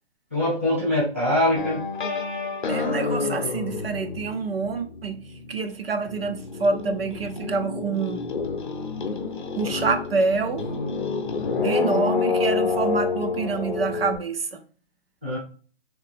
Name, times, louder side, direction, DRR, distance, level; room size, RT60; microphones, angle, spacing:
voice 1, 0.3-1.8 15.2-15.4, left 1 dB, 15° right, -8 dB, 0.5 m, -23 dB
sound 1, 1.6-5.6 5.9-14.2, left 4 dB, 50° left, 0.6 m, -28 dB
voice 2, 2.7-5.2 5.5-8.2 9.6-10.7 11.6-14.6, right 4 dB, 60° right, 7 dB, 0.6 m, -27 dB
3.3 x 2.8 x 3.3 m, 0.39 s
hypercardioid pair, 180°, 33 cm